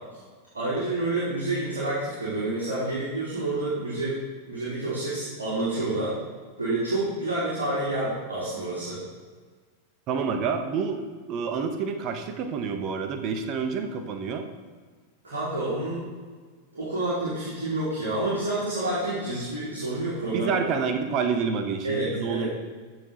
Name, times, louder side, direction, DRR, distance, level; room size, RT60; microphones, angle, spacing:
voice 1, 0.5-4.2 4.5-6.2 6.6-9.0 15.2-16.1 16.7-20.6 21.8-22.5, right 2 dB, 70° right, -9 dB, 3.1 m, -28 dB
voice 2, 10.1-11.0 11.3-14.5 20.2-22.5, right 6 dB, 35° right, 7 dB, 1.1 m, -28 dB
14.0 x 6.3 x 4.0 m, 1.5 s
figure-of-eight pair, 90°, 0 cm